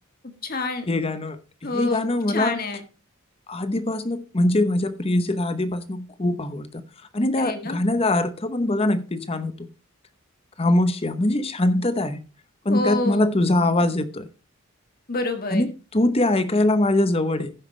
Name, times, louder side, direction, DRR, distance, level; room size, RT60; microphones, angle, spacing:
voice 1, 0.2-0.9 1.6-2.8 7.4-7.8 12.7-13.3 15.1-15.6, left 2 dB, 45° left, 1.6 m, -28 dB
voice 2, 0.9-2.6 3.5-6.8 7.1-9.7 10.6-12.2 12.6-14.3 15.5-17.5, left 1 dB, 25° left, 0.8 m, -23 dB
15.5 x 5.7 x 3.2 m
head